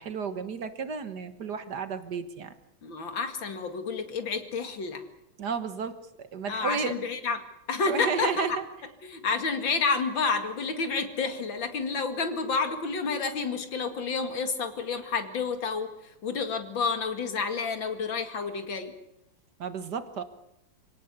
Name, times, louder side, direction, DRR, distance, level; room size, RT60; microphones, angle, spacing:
voice 1, 0.0-2.5 5.4-6.9 7.9-8.6 19.6-20.2, right 5 dB, 60° right, 10 dB, 1.9 m, -32 dB
voice 2, 2.8-5.0 6.5-7.4 7.7-8.6 9.0-18.9, left 4 dB, 75° left, 7 dB, 2.8 m, -30 dB
26.0 x 17.5 x 8.3 m, 0.86 s
omnidirectional pair, 2.1 m